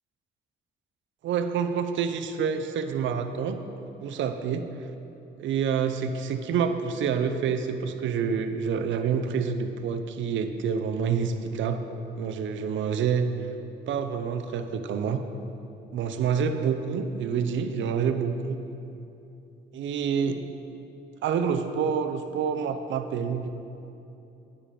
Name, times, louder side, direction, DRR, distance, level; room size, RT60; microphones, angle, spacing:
voice 1, 1.2-3.6 4.0-4.7 5.4-11.9 12.2-13.3 13.9-15.3 15.9-18.6 19.7-20.4 21.2-23.5, right 6 dB, 70° right, 7 dB, 0.7 m, -27 dB
10.0 x 8.4 x 5.1 m, 2.8 s
cardioid pair, 90°, 20 cm